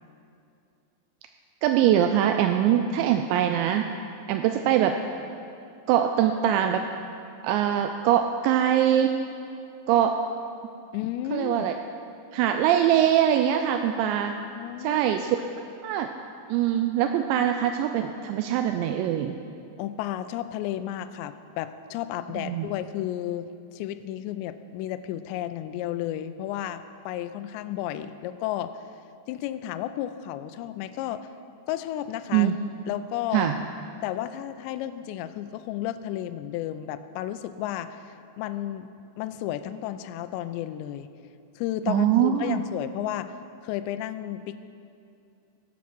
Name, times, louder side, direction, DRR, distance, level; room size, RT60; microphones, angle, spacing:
voice 1, 1.6-3.9 4.3-4.9 5.9-6.8 7.4-9.2 9.9-10.1 11.3-11.7 12.3-14.3 14.8-15.4 15.8-16.1 16.5-19.4 22.4-22.7 32.3-32.6 33.3-33.6 41.9-42.6, right 10 dB, 85° right, 6 dB, 2.6 m, -23 dB
voice 2, 10.9-11.7 14.4-15.0 19.8-28.8 29.3-31.3 31.7-32.5 32.9-33.5 34.0-38.9 39.2-41.1 41.6-43.3 43.6-44.6, left 12 dB, 90° left, 10 dB, 2.5 m, -32 dB
17.5 x 7.3 x 6.1 m, 2.6 s
omnidirectional pair, 5.6 m